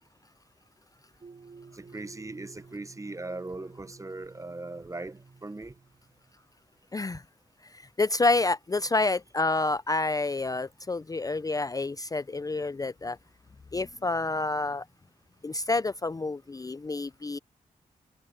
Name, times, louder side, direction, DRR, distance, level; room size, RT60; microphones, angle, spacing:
sound 1, 1.2-6.4, right 4 dB, 50° right, 4.0 m, -52 dB
voice 1, 1.7-5.7, right 2 dB, 20° right, 0.8 m, -39 dB
voice 2, 6.9-7.2 7.7-13.2 13.7-14.8 15.4-17.4, left 3 dB, 25° left, 0.4 m, -28 dB
cardioid pair, 65°, 15 cm